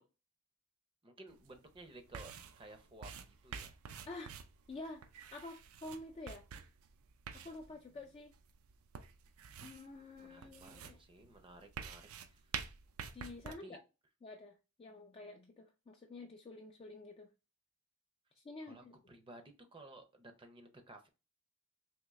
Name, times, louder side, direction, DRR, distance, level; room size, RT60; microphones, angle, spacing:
voice 1, 1.0-3.8 10.2-12.5 13.5-13.8 18.7-21.1, right 2 dB, 25° right, 6 dB, 0.6 m, -56 dB
sound 1, 1.3-13.5, right 7 dB, 70° right, 0.4 m, -49 dB
voice 2, 4.7-5.0 5.3-6.4 7.3-8.3 9.6-11.0 13.1-13.8 14.2-17.3 18.4-19.0, left 2 dB, 25° left, 2 dB, 0.3 m, -49 dB
3.6 x 3.0 x 3.1 m, 0.30 s
head